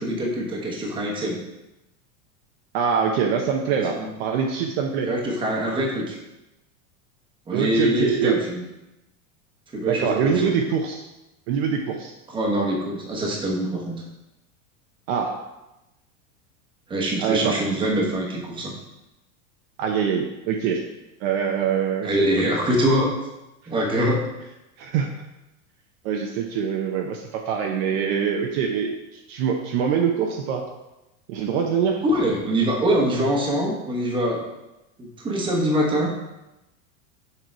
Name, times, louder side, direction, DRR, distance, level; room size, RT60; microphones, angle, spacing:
voice 1, 0.0-1.4 4.0-4.1 5.1-6.2 7.5-8.6 9.7-10.6 12.3-14.0 16.9-18.7 22.0-23.1 23.7-24.3 32.0-34.4 35.0-36.1, right 1 dB, 10° right, -2 dB, 1.1 m, -24 dB
voice 2, 2.7-5.1 7.5-8.4 9.9-11.0 11.5-12.1 15.1-15.4 17.2-17.6 19.8-20.8 21.2-22.4 24.8-25.1 26.0-30.6 31.3-32.0, right 7 dB, 50° right, 2 dB, 0.7 m, -24 dB
6.7 x 4.6 x 4.6 m, 0.95 s
supercardioid pair, 160°, 41 cm